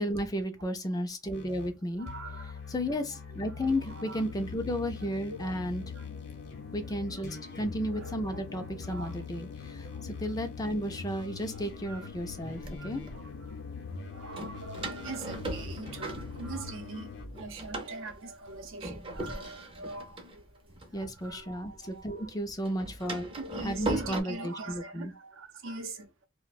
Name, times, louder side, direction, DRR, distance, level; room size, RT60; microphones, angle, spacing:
voice 1, 0.0-2.1 2.7-5.8 6.7-13.0 20.9-23.3 23.6-25.1, equal, 20° left, 0.4 m, -33 dB
sound 1, 1.3-1.8 2.1-17.3, left 4 dB, 55° left, 0.7 m, -44 dB
voice 2, 2.0-2.7 3.5-4.2 5.0-5.6 5.9-6.1 7.1-7.2 7.9-8.4 8.8-9.2 9.8-10.0 11.1-12.1 12.8-13.6 14.1-22.5 23.0-26.3, right 3 dB, 70° right, 0.7 m, -43 dB
sound 2, 3.9-17.5, left 5 dB, 90° left, 0.3 m, -46 dB
Door, 11.2-11.3 12.0-13.1 14.3-16.9 17.2-21.7 22.0-24.2, right 1 dB, 25° right, 0.6 m, -39 dB
2.4 x 2.2 x 3.9 m
head